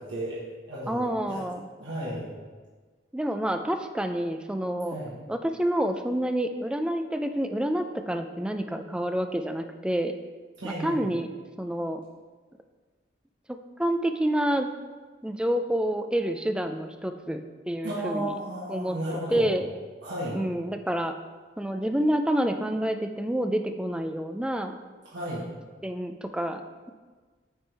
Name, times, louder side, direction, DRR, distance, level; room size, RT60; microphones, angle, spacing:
voice 1, 0.0-1.4 1.8-2.3 4.9-5.1 10.6-11.1 17.8-19.5 20.0-20.4 25.1-25.5, right 1 dB, 75° right, -8 dB, 1.2 m, -33 dB
voice 2, 0.9-1.7 3.1-5.0 5.3-10.1 10.6-11.3 11.6-12.0 13.8-14.7 15.2-17.4 17.7-18.3 18.7-19.6 20.3-21.1 21.6-24.7 25.8-26.6, right 1 dB, 5° right, 7 dB, 0.3 m, -28 dB
8.4 x 3.5 x 4.5 m, 1.4 s
head